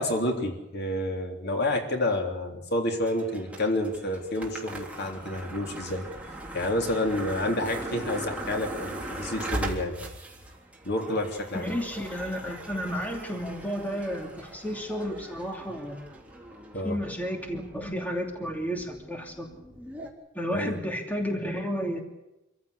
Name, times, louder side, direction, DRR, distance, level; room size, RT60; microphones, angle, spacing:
voice 1, 0.0-6.1 6.5-10.0 10.8-11.7 16.7-17.0 20.5-20.8, left 1 dB, 55° left, 3 dB, 3.5 m, -29 dB
sound 1, 3.0-20.1, right 1 dB, 5° right, 3.5 m, -40 dB
voice 2, 11.5-16.0 16.8-19.5 20.3-22.0, equal, 10° left, 2 dB, 2.8 m, -32 dB
26.0 x 15.0 x 8.3 m, 0.95 s
head